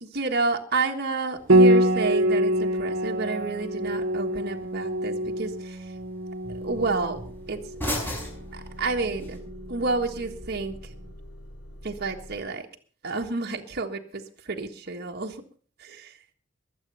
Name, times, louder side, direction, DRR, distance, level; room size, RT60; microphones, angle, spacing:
voice 1, 0.0-5.8 6.6-7.2 7.5-7.6 8.5-10.8 11.8-12.7 13.0-15.4 15.8-16.2, right 3 dB, 55° right, 3 dB, 1.5 m, -30 dB
sound 1, 1.4-9.4, equal, 10° left, 6.1 m, -40 dB
Piano, 1.5-10.8, right 1 dB, 70° right, 1.4 m, -25 dB
Motor vehicle (road) / Engine starting / Idling, 6.6-12.4, equal, 70° left, 6.5 m, -45 dB
21.5 x 8.4 x 5.5 m, 0.43 s
head